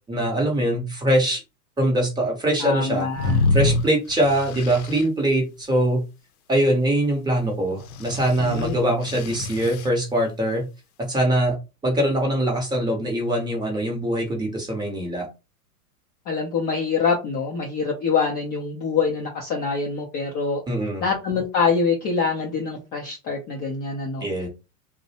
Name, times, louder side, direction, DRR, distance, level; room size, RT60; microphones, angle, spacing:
voice 1, 0.1-1.4 1.8-3.1 3.5-6.0 6.5-10.7 11.0-15.3 20.7-21.0 24.2-24.5, right 1 dB, 10° right, 0.7 m, -23 dB
voice 2, 2.6-3.4 8.4-8.8 16.3-20.6 21.0-24.3, left 5 dB, 25° left, 0.4 m, -25 dB
sound 1, 3.2-5.0 7.8-9.9, left 2 dB, 65° left, 0.6 m, -26 dB
2.5 x 2.1 x 2.7 m
hypercardioid pair, 115°, 46 cm